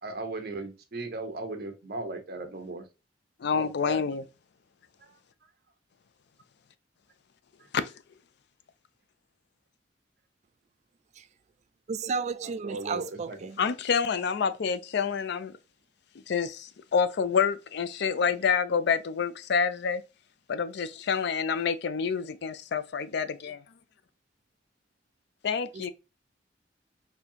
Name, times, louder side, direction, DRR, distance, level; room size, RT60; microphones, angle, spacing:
voice 1, 0.0-2.9 3.5-4.0 5.0-5.2 12.6-13.4, right 2 dB, 55° right, 0.8 m, -37 dB
voice 2, 3.4-4.2 7.7-7.9 13.6-15.5 16.3-20.0 20.5-23.6 25.4-25.9, left 6 dB, 65° left, 0.4 m, -28 dB
voice 3, 11.9-13.6 25.7-25.9, right 5 dB, 40° right, 0.3 m, -33 dB
4.1 x 2.7 x 2.8 m
head